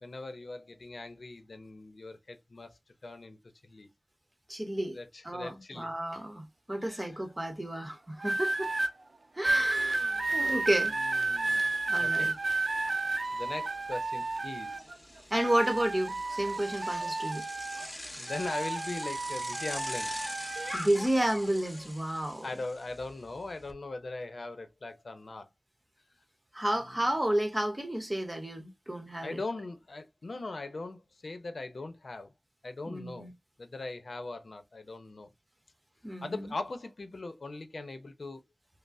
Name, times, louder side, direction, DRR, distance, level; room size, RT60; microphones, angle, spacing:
voice 1, 0.0-3.4 3.6-3.9 4.9-5.9 6.8-7.2 9.7-10.5 10.9-11.7 12.0-12.3 12.9-14.9 18.2-20.2 21.0-21.1 22.4-25.5 26.8-27.0 29.2-32.3 32.6-33.3 33.6-35.3 36.2-38.4, left 2 dB, 90° left, 0.6 m, -40 dB
voice 2, 4.5-5.0 5.2-8.7 9.4-11.0 11.9-12.3 15.3-17.4 20.7-22.5 26.5-29.4 32.9-33.3 36.0-36.5, right 1 dB, 30° right, 1.1 m, -31 dB
sound 1, 8.2-8.9 9.4-15.0 15.3-18.0 18.3-20.8 21.6-21.9, right 2 dB, 70° right, 0.5 m, -32 dB
Bicycle, 9.5-9.6 9.9-23.7, left 1 dB, 20° left, 1.1 m, -45 dB
5.3 x 2.1 x 2.5 m
wide cardioid pair, 55°, 0 cm